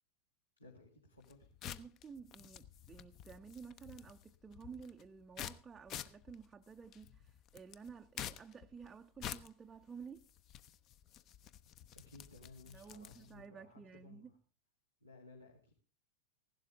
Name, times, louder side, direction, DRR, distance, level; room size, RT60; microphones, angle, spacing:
voice 1, 0.6-1.6 11.9-14.4 15.0-15.7, left 2 dB, 80° left, 2.2 m, -58 dB
sound 1, 1.2-13.4, left 11 dB, 35° left, 0.7 m, -50 dB
voice 2, 1.6-10.3 12.7-14.3, right 6 dB, 15° right, 0.5 m, -53 dB
16.0 x 11.5 x 3.5 m
figure-of-eight pair, 90°, 0 cm